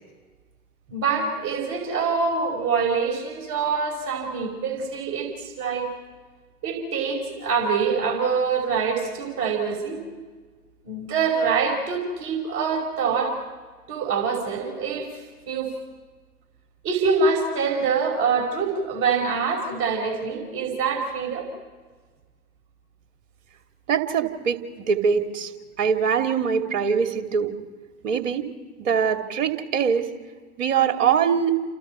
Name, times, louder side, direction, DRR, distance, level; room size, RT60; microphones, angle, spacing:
voice 1, 0.9-5.9 6.6-10.0 10.8-13.4 13.9-15.7 16.8-21.5, right 5 dB, 30° right, 1 dB, 5.1 m, -25 dB
voice 2, 23.9-27.5 28.0-28.5 28.8-30.1 30.6-31.6, right 7 dB, 50° right, 5 dB, 2.7 m, -23 dB
30.0 x 29.0 x 4.5 m, 1.4 s
figure-of-eight pair, 105°, 46 cm